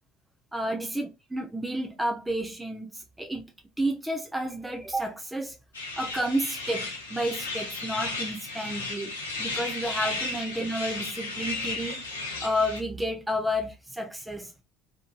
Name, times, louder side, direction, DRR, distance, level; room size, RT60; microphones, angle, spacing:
voice 1, 0.5-3.4 3.8-5.6 6.0-9.1 9.4-12.0 12.4-14.6, equal, 10° right, 0.6 m, -31 dB
sound 1, 5.7-12.8, left 3 dB, 80° left, 0.5 m, -34 dB
2.8 x 2.5 x 2.3 m
figure-of-eight pair, 60°, 0 cm